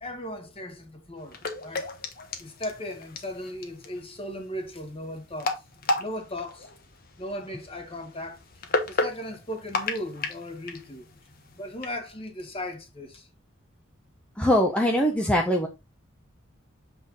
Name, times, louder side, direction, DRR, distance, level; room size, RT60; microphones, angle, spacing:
voice 1, 0.0-1.9 2.4-5.6 6.0-6.7 7.2-8.4 8.9-11.1 11.5-13.3, left 1 dB, 30° left, 1.8 m, -37 dB
sound 1, 1.2-11.9, left 2 dB, 50° left, 1.3 m, -34 dB
voice 2, 14.4-15.7, equal, 5° left, 0.9 m, -22 dB
7.9 x 4.4 x 3.9 m
head